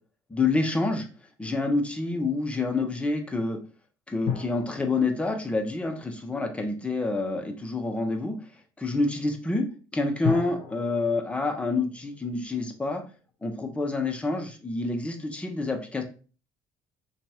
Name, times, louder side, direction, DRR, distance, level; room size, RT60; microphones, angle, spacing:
voice 1, 0.3-1.1 1.4-3.6 4.1-8.4 8.8-9.7 9.9-13.0 13.4-16.0, left 3 dB, 10° left, 4 dB, 0.6 m, -27 dB
sound 1, 4.3-6.9 10.2-12.9 13.1-13.2, left 7 dB, 65° left, 0.6 m, -36 dB
2.9 x 2.3 x 2.8 m, 0.37 s
supercardioid pair, 85°, 10 cm